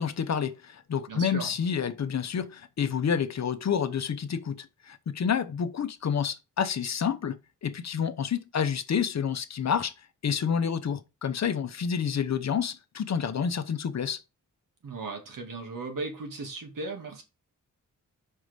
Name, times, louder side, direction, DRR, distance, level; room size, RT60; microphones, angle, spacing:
voice 1, 0.0-9.9 10.2-14.2, left 7 dB, 55° left, 0.8 m, -29 dB
voice 2, 1.1-1.6 14.8-17.2, right 3 dB, 80° right, 2.1 m, -37 dB
5.4 x 4.8 x 5.1 m
wide cardioid pair, 100°, 32 cm